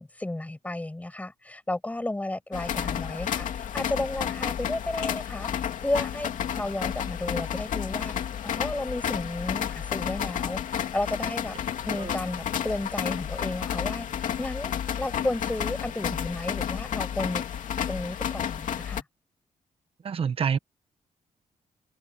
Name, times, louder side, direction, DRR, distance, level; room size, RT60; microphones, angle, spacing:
voice 1, 0.0-6.3 6.6-8.1 8.4-11.6 11.9-17.4 17.9-19.0, left 1 dB, 10° left, 6.7 m, -33 dB
sound 1, 2.5-19.0, left 9 dB, 85° left, 2.5 m, -31 dB
voice 2, 20.0-20.6, right 7 dB, 45° right, 1.2 m, -27 dB
wide cardioid pair, 145°, 13 cm